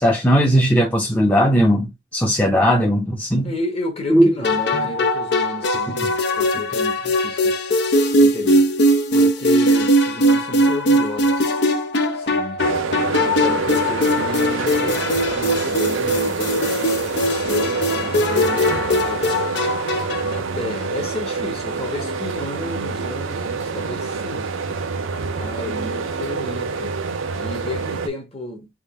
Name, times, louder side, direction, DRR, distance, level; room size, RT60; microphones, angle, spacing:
voice 1, 0.0-3.5 4.1-4.3, equal, 10° left, 0.7 m, -17 dB
voice 2, 3.4-7.6 8.2-8.7 9.1-11.6 12.1-12.6 13.2-19.4 20.2-24.5 25.4-26.9 27.4-28.7, left 2 dB, 30° left, 1.2 m, -32 dB
sound 1, 4.4-20.4, equal, 60° left, 0.7 m, -20 dB
sound 2, 12.6-28.1, right 4 dB, 90° right, 0.6 m, -26 dB
3.6 x 2.5 x 3.5 m
head